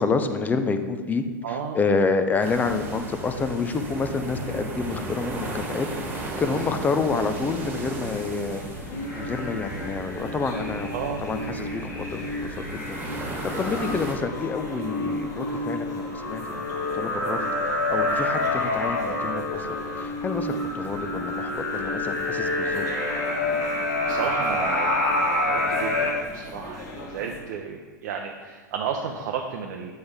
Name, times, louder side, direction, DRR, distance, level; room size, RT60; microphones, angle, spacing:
voice 1, 0.0-8.6 9.1-10.9 11.2-16.6 16.9-22.9 26.5-26.9, left 4 dB, 15° left, 8 dB, 0.5 m, -28 dB
voice 2, 1.4-1.8 10.9-11.2 24.0-29.9, right 7 dB, 55° right, 2 dB, 0.6 m, -32 dB
sound 1, 2.4-14.2, right 2 dB, 20° right, 1.3 m, -35 dB
sound 2, 8.5-27.4, left 2 dB, 30° left, 1.4 m, -41 dB
sound 3, 8.9-26.1, left 2 dB, 70° left, 2.0 m, -28 dB
7.7 x 5.6 x 3.5 m, 1.4 s
figure-of-eight pair, 95°, 10 cm